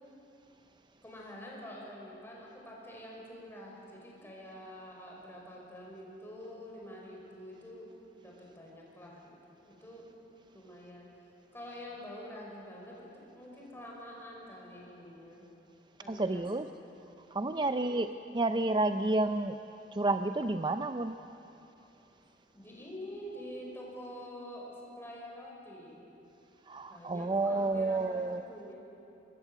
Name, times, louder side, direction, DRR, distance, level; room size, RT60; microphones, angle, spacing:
voice 1, 1.0-7.9 8.2-9.4 9.7-10.1 10.5-11.1 11.5-15.4 16.0-16.9 17.5-18.0 22.5-26.0 26.9-28.8, equal, 15° left, -3 dB, 5.8 m, -47 dB
voice 2, 16.1-16.7 17.3-18.1 18.3-19.6 19.9-21.1 26.7-28.4, right 2 dB, 25° right, 9 dB, 0.5 m, -30 dB
25.5 x 21.5 x 8.1 m, 3.0 s
head